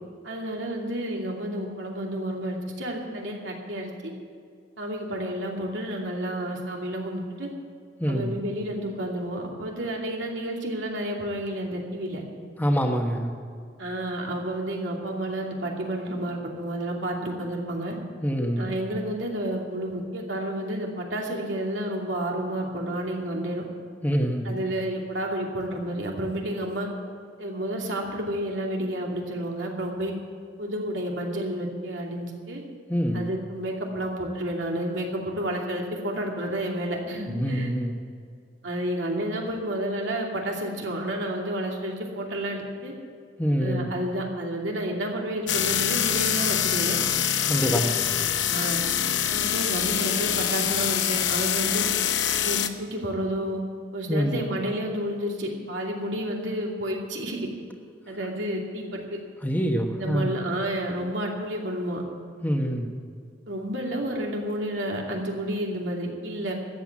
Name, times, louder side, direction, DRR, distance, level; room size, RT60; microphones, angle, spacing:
voice 1, 0.2-4.1 4.8-7.5 8.1-12.2 13.8-18.0 18.6-23.6 24.4-26.9 27.4-30.1 30.6-32.6 33.1-37.7 38.6-42.9 43.6-47.0 48.5-48.8 49.3-51.9 52.4-53.6 53.9-57.4 58.1-59.2 60.0-62.0 63.5-66.5, right 1 dB, 85° right, -1 dB, 2.6 m, -30 dB
voice 2, 8.0-8.3 12.6-13.3 18.2-18.7 24.0-24.5 32.9-33.3 37.3-38.0 43.4-43.9 47.5-48.0 54.1-54.4 59.4-60.4 62.4-62.9, equal, 10° left, 3 dB, 1.2 m, -25 dB
sound 1, 45.5-52.7, left 10 dB, 80° left, 0.8 m, -25 dB
13.5 x 8.2 x 9.6 m, 2.2 s
head